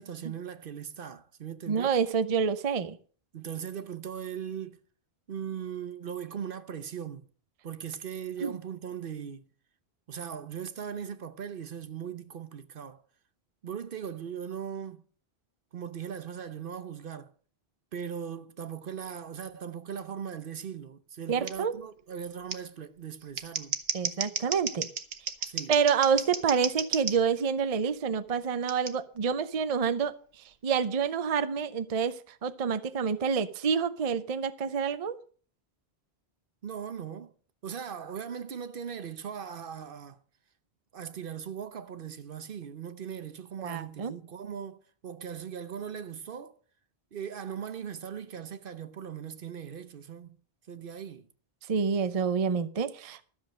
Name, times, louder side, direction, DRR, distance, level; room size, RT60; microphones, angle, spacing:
voice 1, 0.0-2.0 3.3-4.8 5.3-7.3 7.6-9.5 10.1-13.0 13.6-15.0 15.7-17.3 17.9-23.8 25.5-25.7 36.6-37.3 37.6-40.2 40.9-46.5 47.1-50.4 50.7-51.3, right 8 dB, 60° right, 0.9 m, -39 dB
voice 2, 1.7-3.0 8.4-8.5 21.3-21.7 23.9-24.9 25.7-35.2 43.6-44.1 51.7-53.3, right 6 dB, 40° right, 0.7 m, -28 dB
Scissors, 21.5-21.6 22.5-22.6 23.2-27.2 28.7-28.9, right 6 dB, 75° right, 1.3 m, -33 dB
13.0 x 7.1 x 6.3 m
omnidirectional pair, 1.1 m